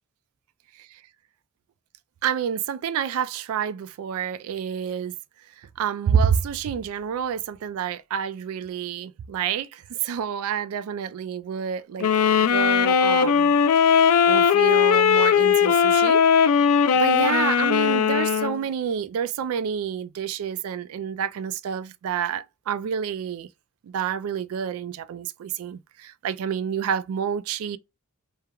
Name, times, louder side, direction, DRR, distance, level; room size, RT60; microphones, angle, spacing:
voice 1, 2.2-5.1 5.8-12.1 12.5-13.5 13.8-16.6 16.9-23.5 23.8-27.8, right 7 dB, 70° right, 0.3 m, -28 dB
sound 1, 12.0-18.6, left 7 dB, 85° left, 0.3 m, -19 dB
3.2 x 2.2 x 2.2 m
head